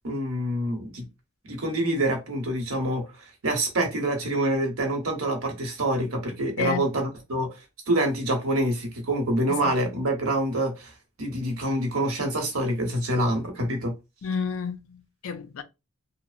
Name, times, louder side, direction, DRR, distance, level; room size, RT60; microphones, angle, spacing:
voice 1, 0.0-1.1 1.4-3.0 3.4-7.5 7.9-10.9 11.2-13.9, right 1 dB, 90° right, 0.9 m, -26 dB
voice 2, 6.6-6.9 9.5-9.7 14.2-15.6, left 6 dB, 75° left, 0.4 m, -31 dB
2.8 x 2.0 x 2.4 m
head